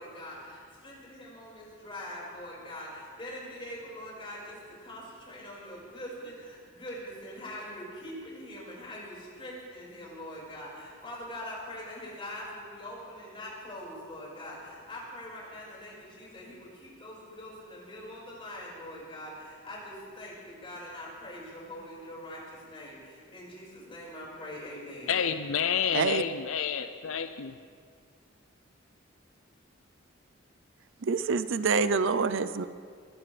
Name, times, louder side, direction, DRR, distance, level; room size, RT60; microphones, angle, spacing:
voice 1, 0.0-25.2, left 1 dB, 30° left, -5 dB, 5.2 m, -43 dB
voice 2, 25.1-27.5, left 7 dB, 75° left, 9 dB, 0.5 m, -29 dB
voice 3, 31.0-32.7, right 5 dB, 65° right, 14 dB, 0.5 m, -26 dB
21.5 x 17.0 x 3.4 m, 2.1 s
head